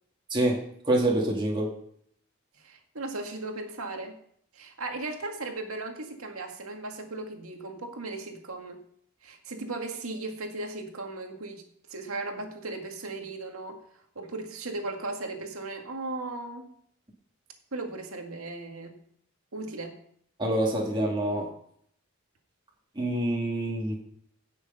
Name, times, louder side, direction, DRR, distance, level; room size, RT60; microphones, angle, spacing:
voice 1, 0.3-1.7 20.4-21.5 23.0-24.0, right 1 dB, 20° right, -2 dB, 2.3 m, -26 dB
voice 2, 2.6-4.2 4.5-8.8 9.2-11.6 11.9-13.8 14.2-16.7 17.7-19.0 19.5-20.0, right 2 dB, 85° right, 4 dB, 2.1 m, -37 dB
17.0 x 6.7 x 5.6 m, 0.66 s
head